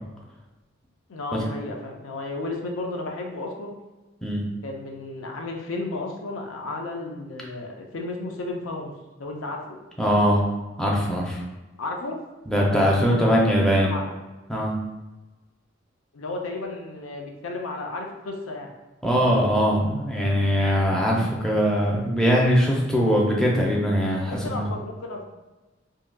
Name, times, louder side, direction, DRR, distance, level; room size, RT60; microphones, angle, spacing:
voice 1, 1.1-3.7 4.6-9.8 11.8-12.2 12.8-13.5 13.8-14.1 16.1-18.7 24.3-25.2, left 2 dB, 90° left, 1 dB, 0.6 m, -33 dB
voice 2, 10.0-10.4 10.8-11.4 12.5-13.9 14.5-14.7 19.0-24.6, equal, 5° left, -3 dB, 0.5 m, -21 dB
3.7 x 2.6 x 2.2 m, 1.1 s
head